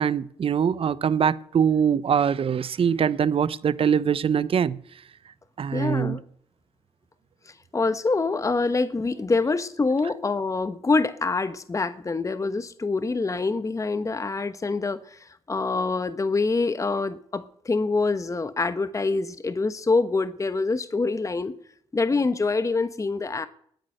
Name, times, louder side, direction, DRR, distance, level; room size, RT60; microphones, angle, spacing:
voice 1, 0.0-4.8 5.6-6.2, right 7 dB, 50° right, 0.8 m, -23 dB
voice 2, 5.7-6.2 7.5-21.5 21.9-23.5, left 3 dB, 25° left, 1.0 m, -25 dB
20.0 x 9.1 x 6.6 m
supercardioid pair, 60°, 12 cm